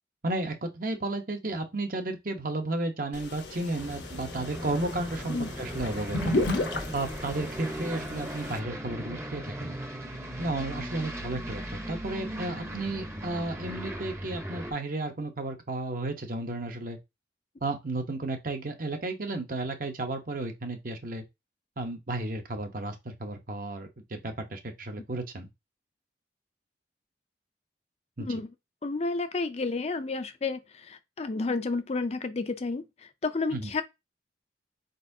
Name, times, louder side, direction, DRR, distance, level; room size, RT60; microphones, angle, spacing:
voice 1, 0.2-6.3 6.9-9.7 10.4-17.0 17.6-21.2 21.8-25.5 28.2-28.3 33.5-33.7, right 2 dB, 50° right, 0.9 m, -33 dB
sound 1, 3.1-8.6, left 2 dB, 75° left, 1.0 m, -34 dB
Aircraft, 3.8-14.7, right 1 dB, 15° right, 0.8 m, -38 dB
voice 2, 28.8-32.8 33.2-33.8, left 3 dB, 35° left, 0.5 m, -31 dB
4.5 x 4.1 x 2.7 m
head